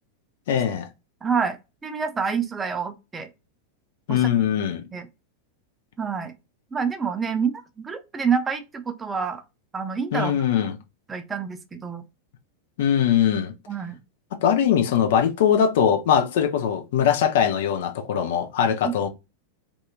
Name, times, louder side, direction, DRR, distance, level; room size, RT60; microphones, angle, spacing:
voice 1, 0.5-0.9 4.1-4.9 10.1-10.8 12.8-13.5 14.4-19.1, left 8 dB, 55° left, 0.4 m, -21 dB
voice 2, 1.2-3.3 4.1-4.2 4.9-5.1 6.0-6.3 6.7-9.4 9.7-10.4 11.1-12.0 13.7-14.0 18.8-19.0, right 6 dB, 15° right, 0.4 m, -27 dB
2.6 x 2.4 x 2.7 m
figure-of-eight pair, 90°, 0 cm